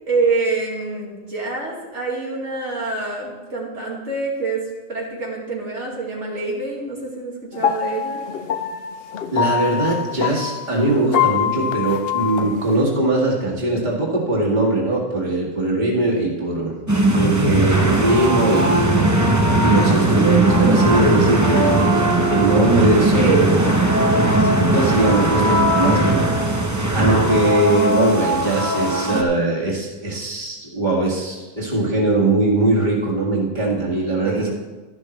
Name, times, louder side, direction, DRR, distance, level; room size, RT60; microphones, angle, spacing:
voice 1, 0.1-8.2 23.1-23.7 34.2-34.5, right 4 dB, 85° right, -3 dB, 2.5 m, -26 dB
sound 1, 7.5-12.8, left 9 dB, 65° left, 0.8 m, -24 dB
voice 2, 9.3-16.7 17.1-23.8 24.1-26.6 26.9-34.5, right 2 dB, 40° right, -5 dB, 2.3 m, -21 dB
sound 2, 16.9-29.2, right 1 dB, 15° right, 0.8 m, -18 dB
12.0 x 12.0 x 3.2 m, 1.2 s
omnidirectional pair, 1.2 m